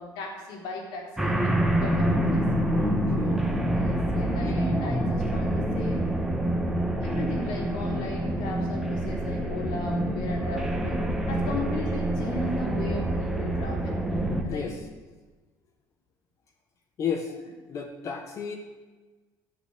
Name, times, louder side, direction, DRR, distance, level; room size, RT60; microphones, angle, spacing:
voice 1, 0.0-2.4 3.6-6.1 7.0-14.0 14.4-14.7, left 2 dB, 85° left, -1 dB, 3.3 m, -37 dB
sound 1, 1.2-14.4, right 1 dB, 5° right, 1.1 m, -26 dB
voice 2, 2.7-3.7 14.5-14.9 17.0-17.4 17.7-18.6, left 6 dB, 40° left, 3 dB, 1.1 m, -33 dB
13.0 x 5.5 x 8.6 m, 1.3 s
cardioid pair, 145°, 8 cm